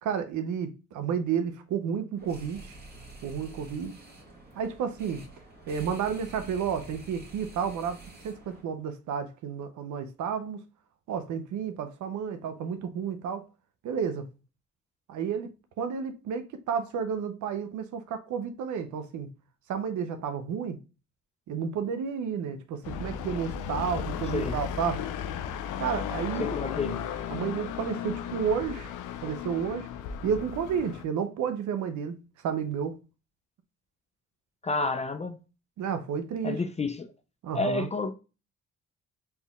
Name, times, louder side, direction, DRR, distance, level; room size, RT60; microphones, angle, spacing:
voice 1, 0.0-2.7 3.2-3.9 4.6-5.2 5.7-10.6 11.1-13.4 13.8-14.3 15.1-15.5 15.8-19.3 19.7-20.8 21.5-25.1 25.8-26.5 27.3-28.9 29.2-29.9 30.2-32.2 32.4-33.0 35.8-36.6 37.4-37.9, right 7 dB, 75° right, 0.6 m, -31 dB
sound 1, 2.2-8.6, right 2 dB, 35° right, 1.6 m, -48 dB
sound 2, 22.8-31.0, left 8 dB, 90° left, 0.5 m, -35 dB
voice 2, 26.4-27.0 34.6-35.4 36.4-37.1 37.5-38.1, left 3 dB, 25° left, 0.4 m, -29 dB
4.3 x 3.5 x 2.2 m
cardioid pair, 90°, 30 cm